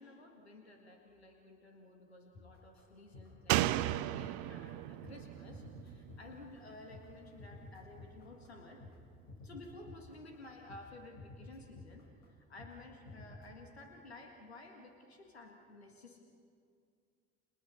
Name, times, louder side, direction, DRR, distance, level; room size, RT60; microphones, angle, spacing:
voice 1, 0.0-8.8 9.4-16.2, left 2 dB, 85° left, 3 dB, 1.9 m, -54 dB
sound 1, 2.3-9.0 9.3-10.4 10.7-10.9 11.2-12.3 12.6-12.8 13.1-13.5, left 3 dB, 60° left, 4.4 m, -53 dB
Slam, 3.5-7.0 7.3-7.4, right 16 dB, 65° right, 0.8 m, -35 dB
30.0 x 29.0 x 5.6 m, 2.3 s
figure-of-eight pair, 50°, 31 cm